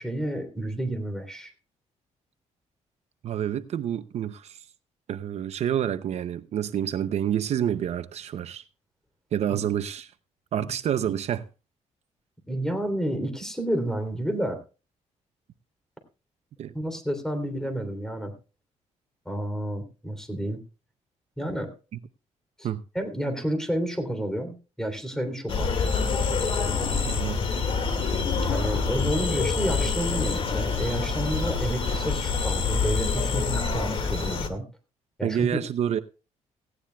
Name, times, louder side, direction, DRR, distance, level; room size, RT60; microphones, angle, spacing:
voice 1, 0.0-1.5 9.5-9.6 10.6-10.7 12.5-14.5 16.7-18.3 19.2-20.6 21.4-21.7 22.6-22.7 22.9-25.7 28.5-34.6 35.2-35.5, right 1 dB, 5° left, 3.1 m, -30 dB
voice 2, 3.2-4.7 5.1-8.6 9.3-10.1 10.5-11.5 16.6-16.7 22.6-22.8 27.0-27.4 35.2-36.0, right 10 dB, 60° right, 0.6 m, -28 dB
sound 1, 25.5-34.5, left 5 dB, 45° left, 2.0 m, -26 dB
17.5 x 16.0 x 2.3 m
cardioid pair, 120°, 13 cm